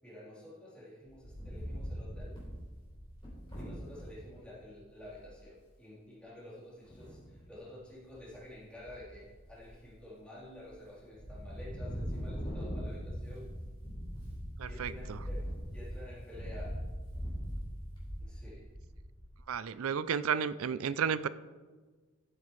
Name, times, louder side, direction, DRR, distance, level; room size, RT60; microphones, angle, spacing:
voice 1, 0.0-2.4 3.6-13.6 14.6-16.8 18.2-18.7, left 1 dB, 5° left, -9 dB, 3.7 m, -50 dB
Wind, 1.0-4.2 4.7-4.8 5.0-5.4 6.8-7.4 7.9-8.4 8.8-9.9 10.4-10.8 11.1-19.4, equal, 20° left, 3.5 m, -41 dB
voice 2, 14.6-15.2 19.5-21.3, right 7 dB, 80° right, 16 dB, 0.4 m, -32 dB
14.0 x 8.8 x 3.2 m, 1.4 s
head